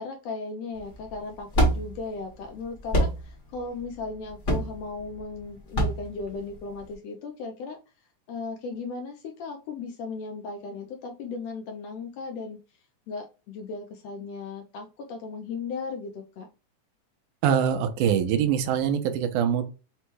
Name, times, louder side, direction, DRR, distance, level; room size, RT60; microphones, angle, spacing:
voice 1, 0.0-7.8 8.3-12.6 13.1-16.5, left 4 dB, 75° left, 3 dB, 1.6 m, -36 dB
sound 1, 0.7-6.9, right 1 dB, 45° left, 0.9 m, -27 dB
voice 2, 17.4-19.7, right 8 dB, 90° right, 8 dB, 2.2 m, -24 dB
6.0 x 2.2 x 3.0 m, 0.31 s
omnidirectional pair, 3.5 m